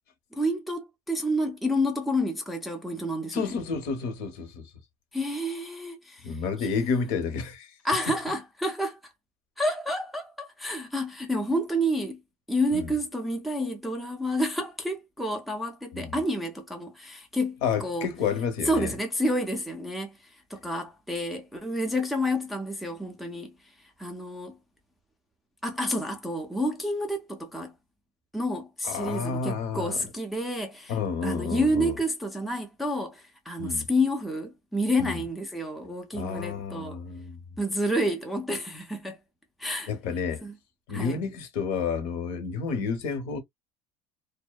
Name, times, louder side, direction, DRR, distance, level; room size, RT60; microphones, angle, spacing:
voice 1, 0.3-3.5 5.1-6.4 6.9-7.0 7.8-9.1 9.6-12.2 12.5-18.1 18.7-20.2 20.5-23.5 24.0-24.6 25.6-27.7 28.3-31.0 31.2-37.0 37.6-39.2 39.6-39.9 40.4-40.6 40.9-41.2, equal, ahead, 0.3 m, -29 dB
voice 2, 3.3-4.7 6.2-7.7 12.7-12.9 15.9-16.1 17.6-18.9 28.8-30.0 30.9-31.9 33.6-33.9 35.0-35.2 36.1-37.4 39.9-40.4 40.9-43.4, left 5 dB, 75° left, 0.9 m, -30 dB
2.6 x 2.1 x 2.2 m
cardioid pair, 170°, 13 cm